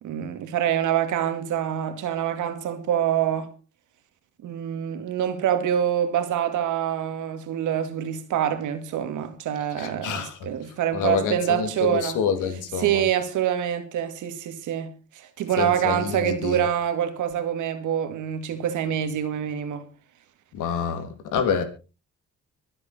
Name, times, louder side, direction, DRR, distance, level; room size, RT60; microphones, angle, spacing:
voice 1, 0.0-3.5 4.4-12.2 12.8-19.9, right 10 dB, 85° right, 2.3 m, -26 dB
voice 2, 9.8-10.5 10.9-13.1 15.6-16.6 20.5-21.6, left 7 dB, 85° left, 3.0 m, -27 dB
24.5 x 8.2 x 4.4 m
cardioid pair, 90°, 30 cm